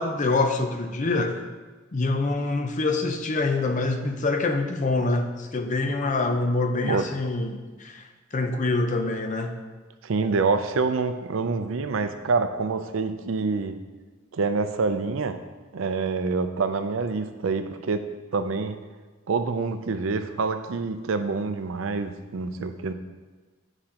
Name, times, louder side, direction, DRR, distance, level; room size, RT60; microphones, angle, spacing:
voice 1, 0.0-1.4 1.9-8.0 8.3-9.5, left 3 dB, 35° left, 6 dB, 0.5 m, -25 dB
voice 2, 10.0-13.7 14.3-15.4 15.7-18.0 18.3-18.8 19.3-22.9, right 4 dB, 75° right, 9 dB, 0.5 m, -26 dB
9.7 x 4.9 x 2.9 m, 1.3 s
head